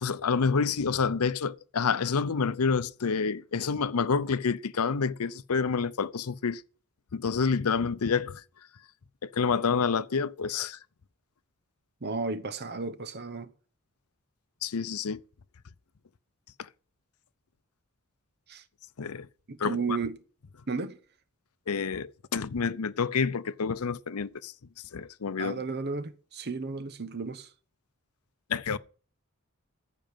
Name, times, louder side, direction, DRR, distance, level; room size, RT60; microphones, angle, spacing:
voice 1, 0.0-6.6 7.1-8.4 9.2-10.8 14.6-15.2 16.6-16.7 19.0-19.3 19.6-20.0 21.7-24.5 24.9-25.6 28.5-28.8, left 5 dB, 85° left, 0.6 m, -28 dB
voice 2, 12.0-13.5 18.5-18.6 19.5-20.2 20.7-21.0 25.4-27.5, right 4 dB, 50° right, 1.0 m, -33 dB
14.5 x 5.1 x 9.0 m
head